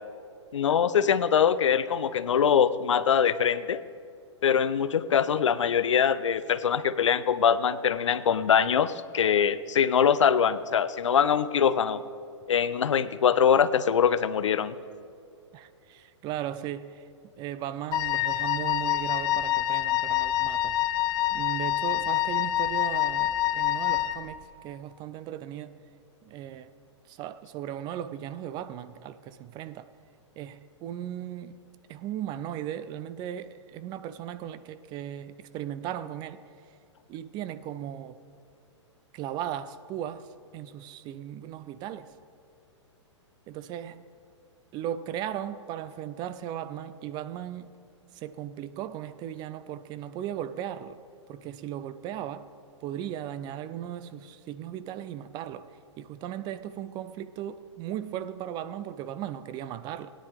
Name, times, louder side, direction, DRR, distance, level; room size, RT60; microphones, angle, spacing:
voice 1, 0.5-3.8 4.4-12.0 12.5-14.7, left 8 dB, 80° left, 0.5 m, -23 dB
voice 2, 15.5-17.0 17.4-20.8 21.3-25.8 26.2-26.7 27.1-29.9 30.4-31.6 31.9-36.4 37.1-38.2 39.1-42.1 43.5-44.1 44.7-47.8 48.1-51.0 51.3-52.5 52.8-55.7 56.0-60.1, right 10 dB, 30° right, 0.4 m, -37 dB
Wind instrument woodwind instrument, 17.9-24.3, left 14 dB, 25° left, 0.5 m, -26 dB
17.0 x 9.9 x 3.5 m
hypercardioid pair, 115°, 16 cm